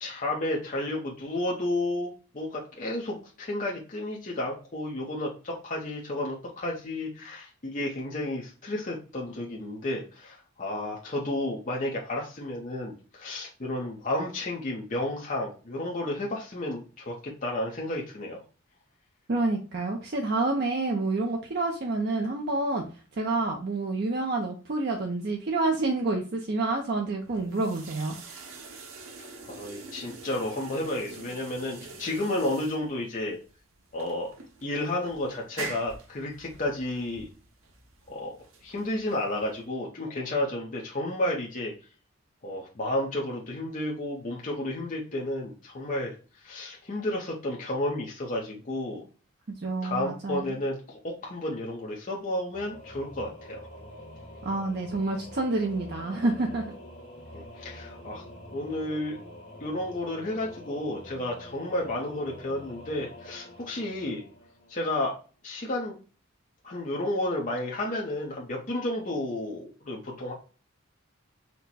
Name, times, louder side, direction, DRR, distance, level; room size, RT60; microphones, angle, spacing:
voice 1, 0.0-18.4 29.4-33.4 33.9-34.3 34.6-37.3 38.1-38.3 38.6-41.7 42.4-46.2 46.4-49.0 49.8-53.6 57.3-58.2 58.5-59.2 59.6-64.2 64.7-65.2 65.4-66.0 66.6-70.3, left 1 dB, 35° left, -2 dB, 0.7 m, -32 dB
voice 2, 19.3-22.8 23.2-28.2 49.6-50.6 54.4-56.7, right 2 dB, 50° right, 2 dB, 0.5 m, -28 dB
sound 1, 27.2-39.6, right 3 dB, 80° right, 0.9 m, -45 dB
Singing / Musical instrument, 52.5-65.1, equal, 55° left, 1.5 m, -46 dB
4.4 x 2.1 x 4.0 m, 0.36 s
head